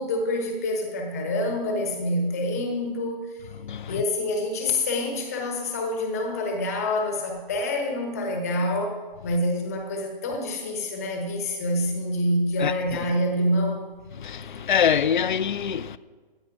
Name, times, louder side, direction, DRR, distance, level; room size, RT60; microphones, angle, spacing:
voice 1, 0.0-3.5 3.9-13.8, left 1 dB, 15° left, 1.1 m, -27 dB
voice 2, 3.6-4.0 12.6-13.0 14.2-16.0, left 8 dB, 55° left, 0.5 m, -25 dB
13.5 x 9.1 x 4.9 m
hypercardioid pair, 165°, 29 cm